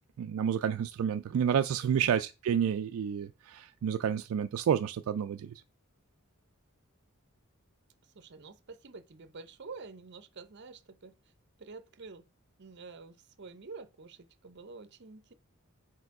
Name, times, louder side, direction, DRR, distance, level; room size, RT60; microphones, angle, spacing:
voice 1, 0.2-5.6, right 8 dB, 75° right, 0.3 m, -30 dB
voice 2, 1.8-2.1 8.1-11.1 11.6-12.2 12.6-15.3, right 4 dB, 55° right, 0.7 m, -48 dB
4.8 x 4.3 x 4.7 m
head